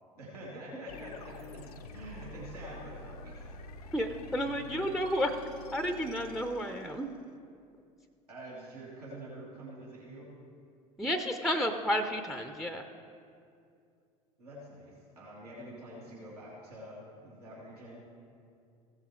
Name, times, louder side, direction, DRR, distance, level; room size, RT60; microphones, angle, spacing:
voice 1, 0.1-3.5 4.4-4.5 8.3-10.3 14.4-18.0, right 1 dB, 80° right, -7 dB, 2.2 m, -46 dB
sound 1, 0.9-7.3, left 2 dB, 75° left, 0.6 m, -47 dB
voice 2, 3.9-5.3 5.7-7.1 11.0-12.8, equal, ahead, 8 dB, 0.6 m, -31 dB
15.5 x 7.3 x 3.2 m, 2.4 s
figure-of-eight pair, 70°, 20 cm